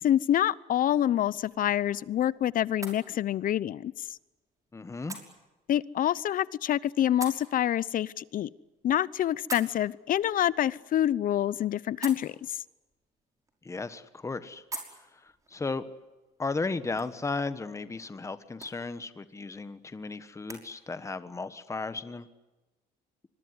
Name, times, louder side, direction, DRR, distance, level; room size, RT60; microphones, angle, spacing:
voice 1, 0.0-3.9 5.7-8.5 8.8-12.6, left 11 dB, 55° left, 20 dB, 0.8 m, -27 dB
sound 1, 1.2-20.6, right 2 dB, 20° right, 5.6 m, -49 dB
voice 2, 4.7-5.2 13.6-14.6 15.1-15.9 16.4-22.3, left 3 dB, 15° left, 12 dB, 1.4 m, -35 dB
25.5 x 22.0 x 9.7 m, 1.1 s
cardioid pair, 110°, 17 cm